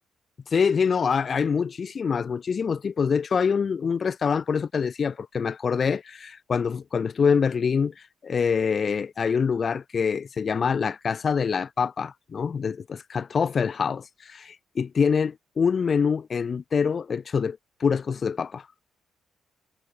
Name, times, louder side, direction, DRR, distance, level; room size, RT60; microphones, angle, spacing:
voice 1, 0.5-18.7, left 6 dB, 45° left, 1.8 m, -25 dB
cardioid pair, 90°, 0 cm